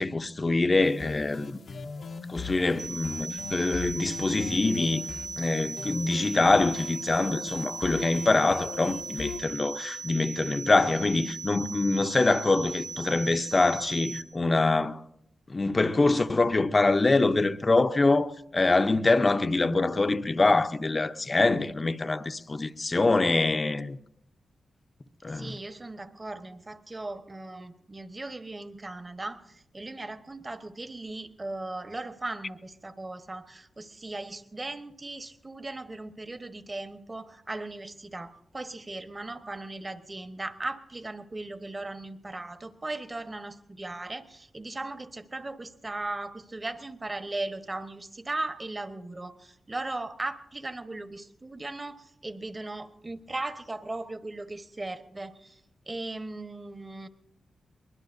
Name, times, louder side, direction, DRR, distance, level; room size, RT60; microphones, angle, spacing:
voice 1, 0.0-1.6 2.3-5.0 5.4-15.0 15.5-24.0 25.2-25.5, left 3 dB, 35° left, 0.7 m, -24 dB
sound 1, 0.8-9.4, left 5 dB, 70° left, 0.9 m, -39 dB
sound 2, 2.8-14.2, right 5 dB, 55° right, 1.2 m, -38 dB
voice 2, 25.3-57.1, right 2 dB, 30° right, 1.2 m, -38 dB
23.0 x 20.5 x 2.7 m
cardioid pair, 70°, 0 cm